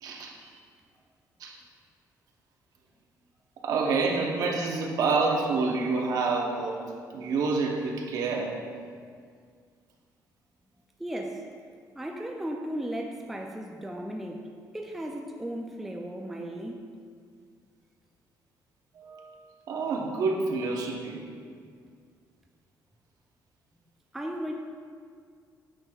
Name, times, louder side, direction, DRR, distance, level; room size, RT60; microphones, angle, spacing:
voice 1, 0.0-0.4 1.4-1.6 3.6-6.8 7.1-8.6 19.0-19.4 19.7-21.2, right 4 dB, 60° right, 0 dB, 0.8 m, -28 dB
voice 2, 11.0-11.4 11.9-14.4 14.7-16.8 24.1-24.6, right 1 dB, 5° right, 1 dB, 0.3 m, -35 dB
8.6 x 6.2 x 2.3 m, 2.1 s
cardioid pair, 170°, 7 cm